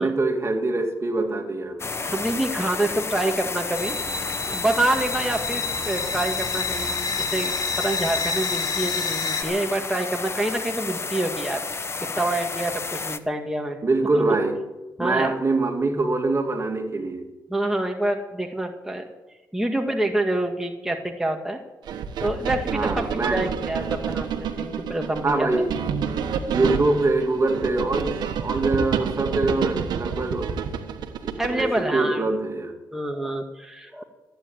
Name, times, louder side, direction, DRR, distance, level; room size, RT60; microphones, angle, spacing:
voice 1, 0.0-1.8 13.8-14.6 15.0-17.3 22.7-23.4 25.2-25.7 26.5-30.5 31.2-32.7, right 2 dB, 40° right, 4 dB, 2.5 m, -24 dB
sound 1, 1.8-13.2, left 4 dB, 35° left, 1.0 m, -31 dB
voice 2, 2.0-4.0 4.5-11.6 12.2-13.8 14.1-14.2 15.0-15.3 17.5-19.1 19.5-21.6 22.2-25.6 26.6-26.8 31.4-32.2 32.9-34.0, right 1 dB, 5° right, 2 dB, 1.9 m, -27 dB
sound 2, 3.7-9.4, left 4 dB, 60° left, 2.1 m, -29 dB
sound 3, 21.9-31.8, right 7 dB, 80° right, 1.3 m, -29 dB
15.0 x 9.3 x 9.2 m, 1.1 s
cardioid pair, 60°, 7 cm